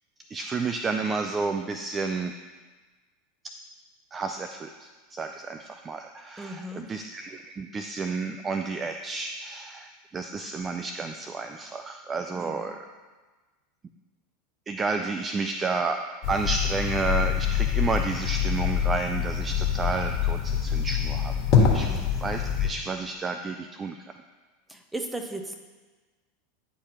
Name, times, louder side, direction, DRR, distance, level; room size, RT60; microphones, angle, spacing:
voice 1, 0.3-2.4 4.1-12.8 14.7-24.1, right 4 dB, 25° right, 6 dB, 0.4 m, -31 dB
voice 2, 6.4-6.9 12.3-12.7 21.8-22.1 24.7-25.6, right 1 dB, 10° right, 5 dB, 0.8 m, -37 dB
sound 1, 16.2-22.7, left 7 dB, 45° left, 1.6 m, -25 dB
9.8 x 4.8 x 3.0 m, 1.3 s
hypercardioid pair, 90°, 0 cm